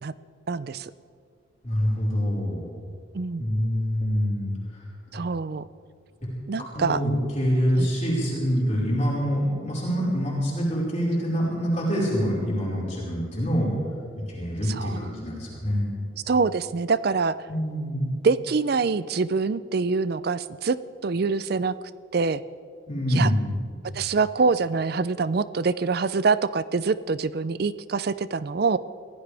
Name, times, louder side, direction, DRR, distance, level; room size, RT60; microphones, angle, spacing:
voice 1, 0.5-0.9 3.1-3.4 5.1-5.6 6.5-7.0 7.8-7.9 14.7-15.0 16.3-17.4 18.2-20.8 21.0-21.7 22.1-22.4 23.1-23.3 23.9-28.8, right 4 dB, 50° right, 16 dB, 0.4 m, -25 dB
voice 2, 1.6-2.6 3.4-4.5 6.7-13.7 14.3-15.9 17.5-18.1 22.9-23.6, equal, 35° left, -5 dB, 4.8 m, -25 dB
25.5 x 16.0 x 3.4 m, 2.3 s
head